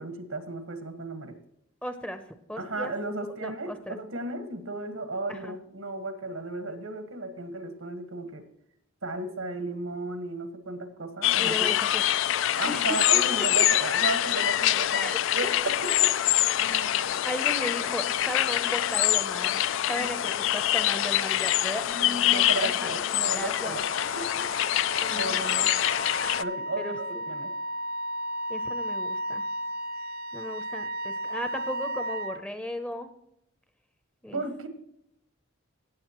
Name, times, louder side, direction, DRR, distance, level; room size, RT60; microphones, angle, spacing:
voice 1, 0.0-1.3 2.6-8.4 9.0-11.5 12.5-15.9 16.6-17.2 21.9-24.8 25.1-25.7 26.4-26.9 27.3-27.5 34.3-34.7, right 2 dB, 85° right, 8 dB, 1.5 m, -34 dB
voice 2, 1.8-2.2 2.5-2.9 3.4-4.0 5.3-5.6 11.4-12.3 12.6-13.6 14.9-15.5 16.9-22.7 23.3-23.8 25.0-25.4 26.8-27.3 28.5-29.4 30.3-33.1 34.2-34.4, left 1 dB, 5° left, 9 dB, 0.7 m, -36 dB
sound 1, 11.2-26.4, left 12 dB, 65° left, 0.3 m, -25 dB
Wind instrument woodwind instrument, 23.0-32.4, right 1 dB, 45° right, 0.6 m, -34 dB
17.0 x 8.0 x 3.0 m, 0.76 s
head